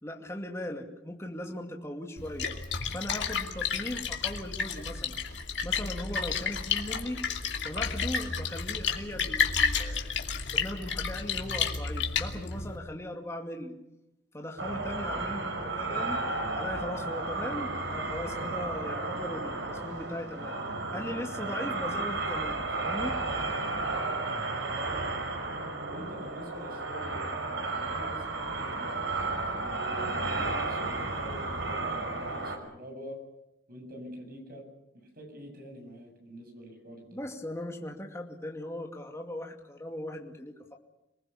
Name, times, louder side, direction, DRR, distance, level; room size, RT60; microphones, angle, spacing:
voice 1, 0.0-2.5 2.9-5.2 5.6-7.2 7.6-13.8 14.3-16.2 16.5-23.1 37.1-40.8, left 1 dB, 15° left, 1 dB, 2.5 m, -38 dB
Splash splatter, 2.2-12.8, left 6 dB, 75° left, 2.7 m, -31 dB
sound 1, 14.6-32.6, right 3 dB, 85° right, 4.6 m, -33 dB
voice 2, 24.6-25.3 25.8-29.0 29.4-33.2 33.7-34.6 35.2-37.2, right 1 dB, 55° right, 3 dB, 7.8 m, -45 dB
27.5 x 19.5 x 7.2 m, 0.88 s
head